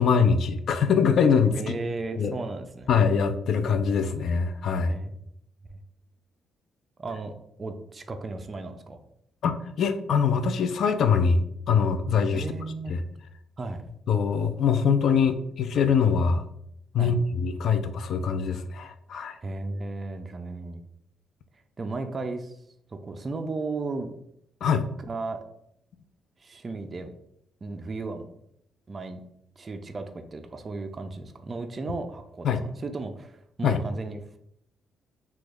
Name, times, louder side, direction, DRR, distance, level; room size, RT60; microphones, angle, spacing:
voice 1, 0.0-1.8 2.2-2.3 2.9-5.0 9.4-11.4 11.7-12.4 12.9-13.0 14.1-16.4 16.9-19.4 24.6-24.8 32.4-32.6 33.6-33.8, left 6 dB, 65° left, 9 dB, 0.3 m, -23 dB
voice 2, 1.6-2.9 4.9-5.2 5.7-5.8 7.0-7.3 7.6-9.0 12.3-13.0 13.6-13.8 17.0-17.1 19.4-20.8 21.8-22.5 22.9-24.2 25.0-25.4 26.4-27.1 27.6-28.3 28.9-29.2 29.6-34.4, right 3 dB, 35° right, 6 dB, 0.4 m, -35 dB
3.0 x 2.3 x 3.5 m, 0.75 s
cardioid pair, 90°, 0 cm